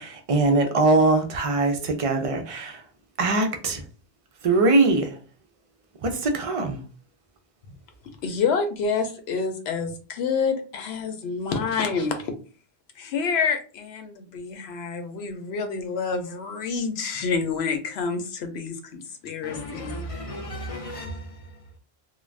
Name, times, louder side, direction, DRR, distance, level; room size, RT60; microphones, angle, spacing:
voice 1, 0.0-2.8 3.2-3.8 4.4-5.1 6.0-6.8, right 3 dB, 45° right, 0.5 m, -22 dB
voice 2, 8.2-12.3 13.0-19.9, left 5 dB, 85° left, 0.9 m, -28 dB
voice 3, 19.4-21.5, equal, 50° left, 0.4 m, -35 dB
2.4 x 2.2 x 3.2 m
omnidirectional pair, 1.0 m